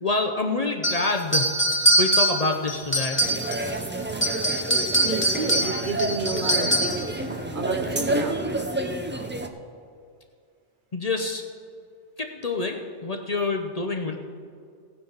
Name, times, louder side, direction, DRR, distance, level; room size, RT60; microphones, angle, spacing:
voice 1, 0.0-1.5 2.0-3.2 10.9-11.4 12.2-14.2, left 3 dB, 40° left, 3 dB, 0.7 m, -27 dB
sound 1, 0.8-3.7 4.1-7.1, right 1 dB, 10° left, 1.5 m, -23 dB
sound 2, 3.2-9.5, right 1 dB, 15° right, 0.4 m, -29 dB
voice 2, 5.0-7.1 7.5-8.4, right 4 dB, 50° right, 6 dB, 0.8 m, -30 dB
16.5 x 9.4 x 4.0 m, 2.3 s
omnidirectional pair, 1.2 m